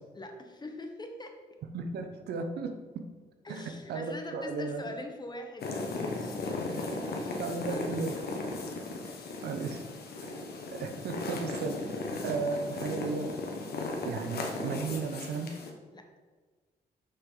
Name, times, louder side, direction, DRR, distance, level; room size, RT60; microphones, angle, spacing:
voice 1, 0.1-1.4 3.4-8.4 9.0-9.5 15.9-16.1, left 1 dB, 25° left, 4 dB, 1.2 m, -44 dB
voice 2, 1.7-3.0 3.5-3.6 3.9-4.8 7.4-8.1 9.4-9.8 10.2-10.4 10.8-13.3 14.0-15.5, right 4 dB, 85° right, 6 dB, 0.8 m, -35 dB
sound 1, 5.6-15.7, left 3 dB, 75° left, 1.1 m, -36 dB
6.5 x 5.7 x 3.8 m, 1.4 s
cardioid pair, 65°, 16 cm